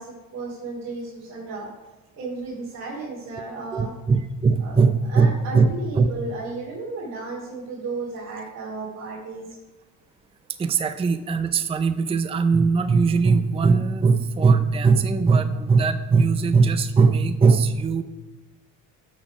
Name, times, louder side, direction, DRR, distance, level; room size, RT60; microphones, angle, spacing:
voice 1, 0.0-1.7 2.1-3.9 4.6-4.8 5.1-9.5, right 3 dB, 45° right, -6 dB, 2.9 m, -34 dB
voice 2, 3.7-6.1 10.6-18.0, right 4 dB, 15° right, 10 dB, 0.5 m, -20 dB
12.0 x 6.5 x 4.7 m, 1.1 s
cardioid pair, 105°, 36 cm